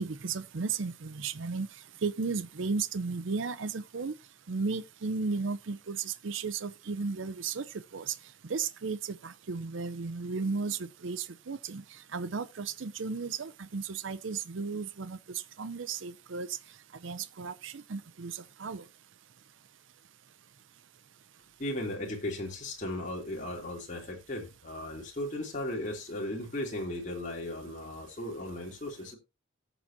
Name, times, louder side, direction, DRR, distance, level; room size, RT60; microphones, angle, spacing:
voice 1, 0.0-1.7 2.0-4.1 4.5-7.6 7.9-8.1 8.5-11.8 12.1-15.2 15.6-16.5 17.0-18.8, right 4 dB, 75° right, 0.6 m, -34 dB
voice 2, 21.6-29.2, left 1 dB, 40° left, 2.9 m, -36 dB
18.5 x 7.0 x 2.7 m
head